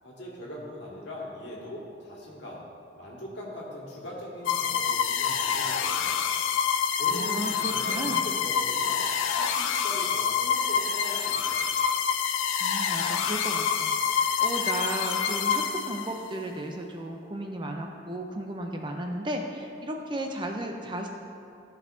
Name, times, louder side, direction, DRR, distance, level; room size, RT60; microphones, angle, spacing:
voice 1, 0.0-2.7 3.0-6.3 7.0-9.1 9.3-11.7, equal, 65° left, -4 dB, 1.7 m, -41 dB
sound 1, 4.4-16.3, left 7 dB, 90° left, 0.4 m, -27 dB
voice 2, 7.1-8.3 12.6-21.1, right 1 dB, 25° right, 2 dB, 0.5 m, -34 dB
13.5 x 5.4 x 2.7 m, 2.5 s
head